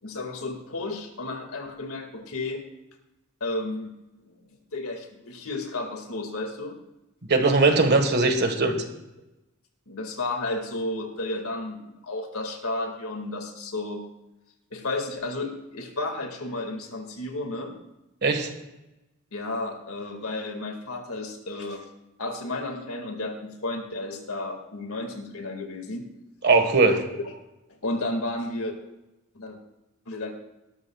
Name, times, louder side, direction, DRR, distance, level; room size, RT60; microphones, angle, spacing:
voice 1, 0.0-2.6 3.4-3.9 4.3-4.4 4.7-6.8 9.9-14.1 14.7-17.7 19.3-21.9 22.2-26.1 27.8-28.8 29.3-29.6 30.1-30.3, left 2 dB, 85° left, 4 dB, 2.2 m, -32 dB
voice 2, 7.3-8.8 18.2-18.5 26.4-27.0, right 3 dB, 50° right, 6 dB, 1.6 m, -20 dB
19.0 x 12.5 x 2.4 m, 0.98 s
head